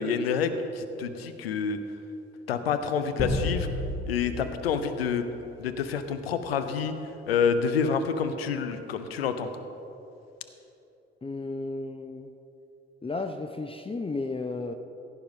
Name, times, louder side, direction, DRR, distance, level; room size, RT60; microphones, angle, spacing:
voice 1, 0.0-1.8 2.5-3.7 4.0-5.2 5.6-6.9 7.3-9.5, left 6 dB, 85° left, 9 dB, 0.7 m, -28 dB
sound 1, 3.2-5.8, left 2 dB, 55° left, 2.6 m, -32 dB
voice 2, 11.2-12.3 13.0-14.7, left 3 dB, 20° left, 6 dB, 0.7 m, -33 dB
16.0 x 9.3 x 5.3 m, 2.9 s
figure-of-eight pair, 45°, 30 cm